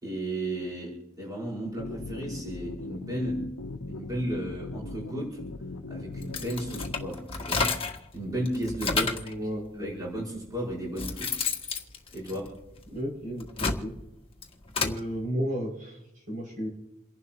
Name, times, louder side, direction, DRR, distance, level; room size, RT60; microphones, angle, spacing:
voice 1, 0.0-3.5 3.9-5.4 5.9-7.7 8.1-9.3 9.8-11.4 12.1-12.5, right 1 dB, 20° right, -5 dB, 5.2 m, -34 dB
sound 1, 1.7-7.1, left 2 dB, 85° left, 0.8 m, -39 dB
sound 2, 6.2-8.1 8.5-9.3 10.2-10.3 10.7-12.9 13.3-15.0, left 4 dB, 25° left, 1.5 m, -31 dB
voice 2, 8.9-9.8 12.9-13.9 14.8-16.7, equal, 40° right, -3 dB, 6.7 m, -33 dB
29.0 x 11.5 x 3.0 m, 0.90 s
head